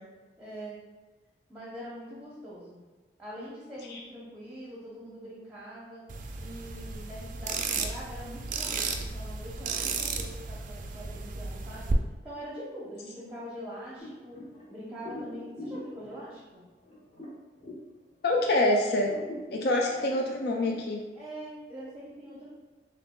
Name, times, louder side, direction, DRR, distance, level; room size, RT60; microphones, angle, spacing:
voice 1, 0.4-0.8 1.5-2.8 3.2-6.1 6.4-11.9 12.2-16.6 19.9-20.2 21.1-22.5, equal, 5° right, -7 dB, 0.7 m, -43 dB
sound 1, 6.1-11.9, right 5 dB, 45° right, 0.4 m, -34 dB
sound 2, 14.0-18.6 19.0-20.8, left 1 dB, 40° left, 1.4 m, -44 dB
voice 2, 18.2-19.1 19.5-21.0, left 1 dB, 60° left, 0 dB, 0.4 m, -26 dB
6.9 x 2.3 x 2.2 m, 1.3 s
head